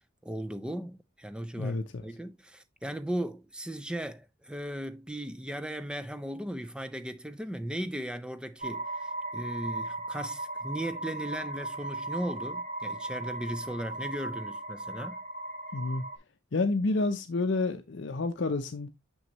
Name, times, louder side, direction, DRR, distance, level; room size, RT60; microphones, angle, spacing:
voice 1, 0.2-15.2, right 1 dB, 5° right, 0.4 m, -37 dB
voice 2, 1.6-2.1 15.7-16.0 16.5-18.9, left 3 dB, 60° left, 0.6 m, -29 dB
sound 1, 8.6-16.2, right 2 dB, 40° right, 2.0 m, -37 dB
6.3 x 6.2 x 2.9 m
head